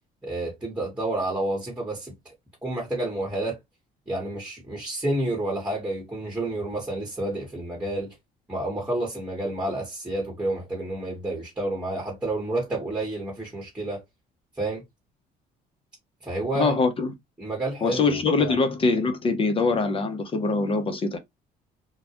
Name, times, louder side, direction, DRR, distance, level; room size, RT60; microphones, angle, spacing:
voice 1, 0.2-2.3 2.6-3.6 4.1-8.1 8.5-14.0 14.6-14.8 16.2-16.7 17.4-18.6, right 1 dB, 5° right, 1.0 m, -30 dB
voice 2, 16.5-17.1 17.8-21.2, left 4 dB, 35° left, 0.5 m, -23 dB
2.2 x 2.1 x 2.7 m
cardioid pair, 110°, 17 cm